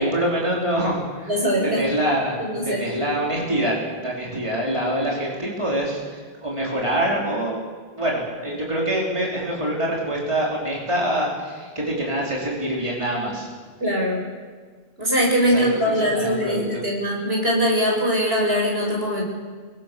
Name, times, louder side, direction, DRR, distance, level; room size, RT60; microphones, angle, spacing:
voice 1, 0.0-1.3 1.6-2.4 2.6-7.6 7.9-13.5 15.5-15.7 15.9-16.8, right 1 dB, 30° right, -3 dB, 4.9 m, -25 dB
voice 2, 1.3-1.8 2.4-2.9 13.8-14.2 15.0-19.2, equal, 75° right, -2 dB, 7.6 m, -22 dB
28.5 x 23.0 x 7.1 m, 1.5 s
omnidirectional pair, 1.0 m